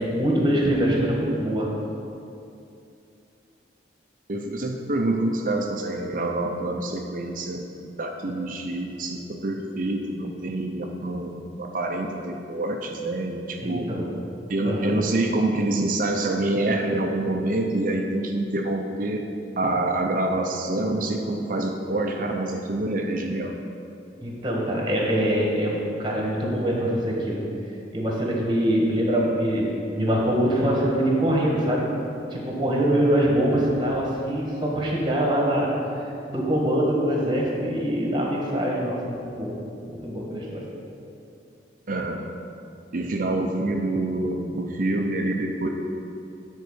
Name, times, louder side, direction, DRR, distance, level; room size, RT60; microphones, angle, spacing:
voice 1, 0.0-1.7 13.6-14.1 14.6-15.0 24.2-27.4 27.9-31.9 32.3-35.7 36.3-39.5 39.9-40.7, right 1 dB, 25° right, -2 dB, 1.5 m, -24 dB
voice 2, 4.3-7.7 8.0-13.9 14.5-19.3 19.6-23.5 41.9-42.2 42.9-45.7, right 2 dB, 50° right, 2 dB, 0.6 m, -26 dB
9.5 x 4.6 x 6.3 m, 2.7 s
head